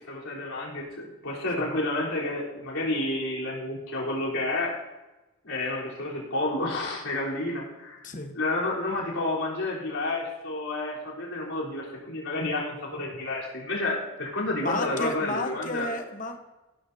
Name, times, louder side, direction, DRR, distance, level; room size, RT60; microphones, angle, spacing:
voice 1, 0.1-4.7 5.4-8.1 8.3-15.9, left 2 dB, 80° left, -5 dB, 3.8 m, -30 dB
voice 2, 14.6-16.4, left 2 dB, 35° left, 5 dB, 1.0 m, -32 dB
16.5 x 13.0 x 2.8 m, 1.1 s
head